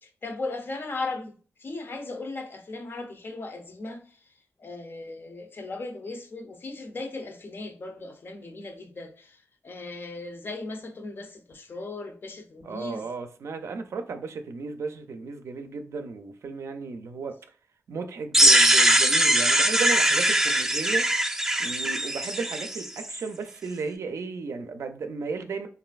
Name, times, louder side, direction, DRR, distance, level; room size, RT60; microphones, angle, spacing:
voice 1, 0.0-4.2 4.6-13.0, left 3 dB, 50° left, 0.5 m, -37 dB
voice 2, 12.6-17.4 17.9-21.1 21.6-25.7, right 4 dB, 75° right, 0.4 m, -34 dB
sound 1, 18.3-23.2, right 1 dB, 10° right, 0.4 m, -21 dB
3.1 x 2.5 x 2.3 m
wide cardioid pair, 90°, 5 cm